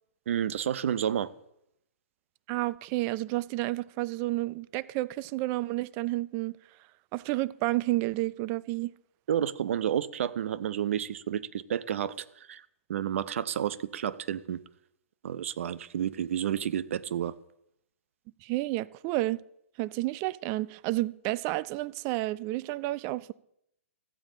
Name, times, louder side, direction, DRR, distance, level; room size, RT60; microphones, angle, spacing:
voice 1, 0.3-1.3 9.3-12.6 12.9-14.6 15.2-17.3, right 9 dB, 65° right, 0.7 m, -30 dB
voice 2, 2.5-6.6 7.1-8.9 18.4-19.4 19.8-23.3, right 18 dB, 30° right, 0.4 m, -30 dB
14.5 x 8.9 x 3.8 m
hypercardioid pair, 140°, 7 cm